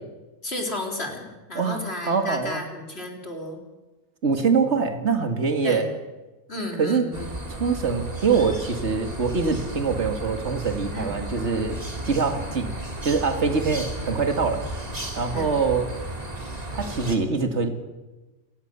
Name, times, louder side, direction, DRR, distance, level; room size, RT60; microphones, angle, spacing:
voice 1, 0.4-3.6 5.6-5.9 6.5-7.3 10.9-11.2 15.3-15.6, left 1 dB, 40° left, 2 dB, 4.1 m, -33 dB
voice 2, 1.5-2.6 4.2-5.9 6.8-7.1 7.5-11.8 12.0-12.7 13.0-14.6 15.2-15.9 16.7-17.7, right 5 dB, 50° right, 7 dB, 2.5 m, -24 dB
sound 1, 7.1-17.2, right 1 dB, 25° right, 2.8 m, -34 dB
28.0 x 19.0 x 7.0 m, 1.2 s
omnidirectional pair, 1.6 m